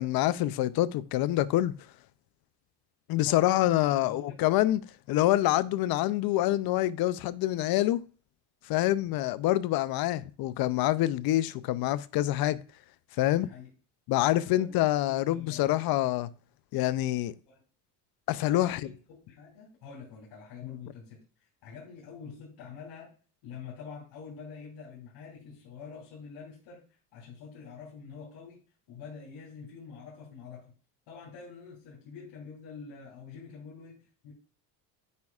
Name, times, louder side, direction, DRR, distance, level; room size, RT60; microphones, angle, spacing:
voice 1, 0.0-1.8 3.1-4.8 5.1-8.1 8.7-12.6 13.2-13.5 14.1-16.3 16.7-17.3 18.3-18.8 20.6-20.8, left 15 dB, 55° left, 0.5 m, -26 dB
voice 2, 3.2-4.4 13.3-13.7 14.1-14.8 15.1-15.7 17.5-17.6 18.4-19.0 19.3-21.2 21.6-23.1 23.4-26.8 27.1-28.6 28.9-30.6 31.1-34.3, left 6 dB, 70° left, 3.3 m, -46 dB
9.4 x 5.3 x 2.4 m
cardioid pair, 120°, 43 cm